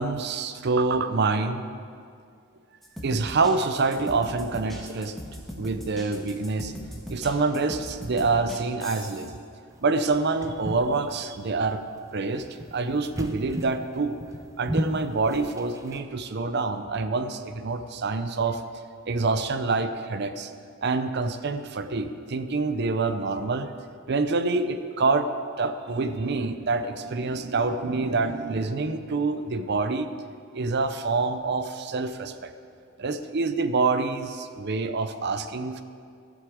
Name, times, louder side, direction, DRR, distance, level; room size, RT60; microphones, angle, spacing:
voice 1, 0.0-1.6 3.0-5.2 5.6-6.7 7.1-9.4 9.8-11.8 12.1-12.4 12.7-14.2 14.6-18.6 19.1-20.5 20.8-23.7 24.1-25.3 25.6-30.1 30.5-32.5 33.0-35.8, right 3 dB, 55° right, 10 dB, 0.6 m, -26 dB
sound 1, 2.8-9.3, equal, ahead, 1.4 m, -39 dB
sound 2, 9.7-16.0, equal, 15° right, 0.7 m, -35 dB
12.5 x 8.0 x 6.1 m, 2.3 s
head